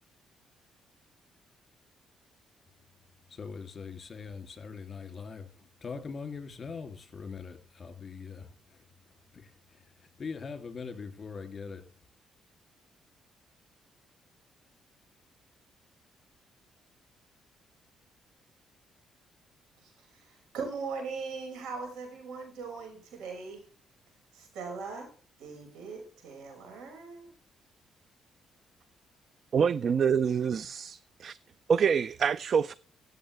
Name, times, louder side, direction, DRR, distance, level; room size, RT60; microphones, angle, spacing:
voice 1, 3.3-8.8 9.3-11.9, left 5 dB, 40° left, 2.8 m, -42 dB
voice 2, 19.8-23.6 24.3-25.1 25.4-27.3, right 4 dB, 90° right, 5.6 m, -40 dB
voice 3, 29.5-31.4 31.7-32.7, right 7 dB, 55° right, 0.4 m, -26 dB
16.5 x 7.7 x 3.3 m
cardioid pair, 90°, 0 cm